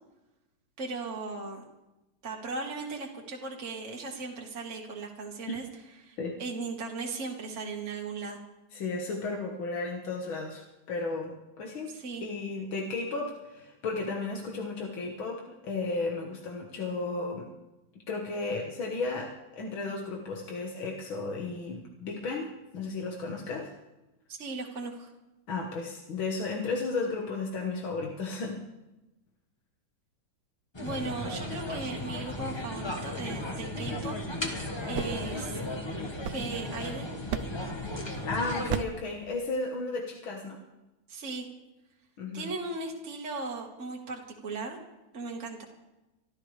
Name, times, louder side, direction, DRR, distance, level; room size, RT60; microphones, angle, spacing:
voice 1, 0.8-1.6 2.2-5.6 6.0-8.4 11.9-12.3 24.3-25.1 30.8-34.2 34.9-35.6 36.2-37.2 41.1-41.5 42.3-44.8 45.1-45.7, right 3 dB, 40° right, -1 dB, 1.9 m, -37 dB
voice 2, 8.7-11.9 12.2-17.5 18.1-23.7 25.5-28.7 38.2-40.6 42.2-42.5, left 3 dB, 90° left, 0 dB, 2.2 m, -34 dB
sound 1, 30.7-38.8, left 1 dB, 15° left, 1.2 m, -35 dB
sound 2, 34.7-36.9 37.3-37.8 38.7-39.1, right 9 dB, 65° right, 1.0 m, -36 dB
25.0 x 13.5 x 3.3 m, 1.0 s
omnidirectional pair, 2.1 m